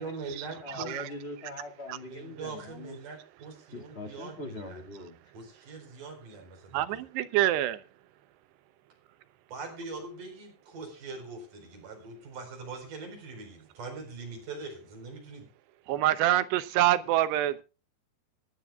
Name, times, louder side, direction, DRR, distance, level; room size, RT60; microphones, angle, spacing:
voice 1, 0.0-0.9 2.0-4.8 5.3-7.0 9.5-15.5, right 4 dB, 50° right, 3 dB, 5.9 m, -42 dB
voice 2, 0.6-3.0 3.7-5.2, left 2 dB, 20° left, 4 dB, 1.9 m, -42 dB
voice 3, 6.7-7.8 15.9-17.6, right 14 dB, 90° right, 13 dB, 3.0 m, -26 dB
24.5 x 10.5 x 2.4 m, 0.33 s
omnidirectional pair, 4.7 m